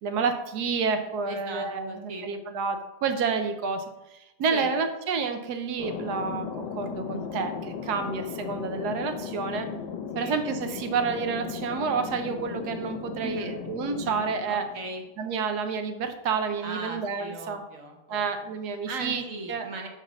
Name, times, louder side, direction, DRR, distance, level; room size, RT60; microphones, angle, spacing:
voice 1, 0.0-3.9 4.4-9.7 10.1-14.7 15.2-17.6 18.1-19.2 19.5-19.7, right 5 dB, 75° right, 8 dB, 1.3 m, -29 dB
voice 2, 1.3-2.3 4.5-4.7 10.1-10.4 13.2-13.6 14.5-15.0 16.6-18.5 18.9-19.9, right 2 dB, 55° right, 3 dB, 1.2 m, -38 dB
Thunder, 5.8-15.1, left 6 dB, 85° left, 1.4 m, -36 dB
5.9 x 4.2 x 6.0 m, 0.96 s
omnidirectional pair, 1.8 m